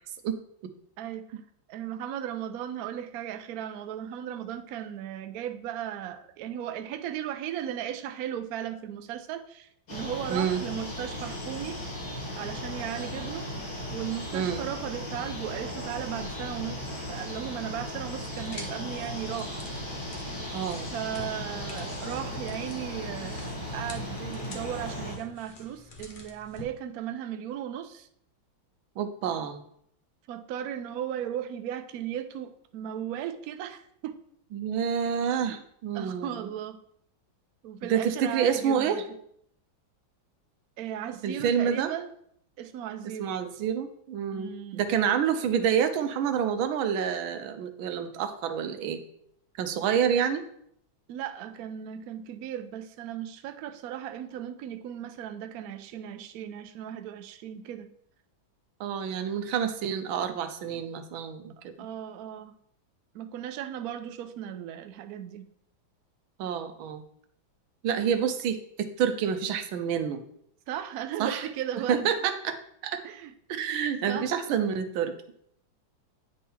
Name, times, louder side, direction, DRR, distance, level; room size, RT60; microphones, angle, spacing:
voice 1, 1.0-1.4 1.7-11.8 12.4-19.6 20.9-28.1 30.3-34.2 35.9-36.8 37.6-39.0 40.8-42.1 42.6-43.4 44.3-44.9 51.1-57.9 61.8-62.5 63.1-65.5 70.7-72.1 73.0-73.3 73.6-73.8 74.1-74.3, right 10 dB, 70° right, 8 dB, 0.9 m, -36 dB
sound 1, 9.9-25.1, left 1 dB, 85° left, 3.5 m, -36 dB
voice 2, 10.3-10.6 14.3-14.7 20.5-20.9 29.0-29.6 34.5-36.5 37.8-39.0 41.2-41.9 43.2-49.0 49.6-50.4 58.8-61.9 66.4-67.0 67.8-70.2 71.2-71.4 71.9-72.6 72.8-73.0 73.6-75.1, right 8 dB, 90° right, 8 dB, 1.5 m, -28 dB
sound 2, 18.1-26.6, left 2 dB, 70° left, 0.4 m, -48 dB
9.5 x 3.6 x 4.3 m, 0.69 s
omnidirectional pair, 2.2 m